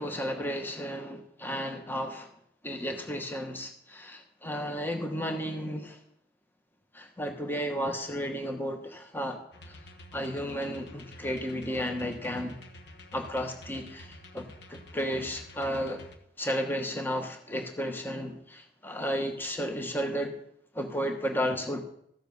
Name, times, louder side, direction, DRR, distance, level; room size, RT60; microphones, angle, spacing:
voice 1, 0.0-2.3 2.6-6.0 6.9-9.4 9.7-9.8 10.1-12.6 13.1-16.0 16.4-20.4 20.7-21.8, equal, 10° left, 4 dB, 1.1 m, -33 dB
sound 1, 9.5-16.2, left 1 dB, 65° left, 1.2 m, -49 dB
14.5 x 7.1 x 5.4 m, 0.73 s
head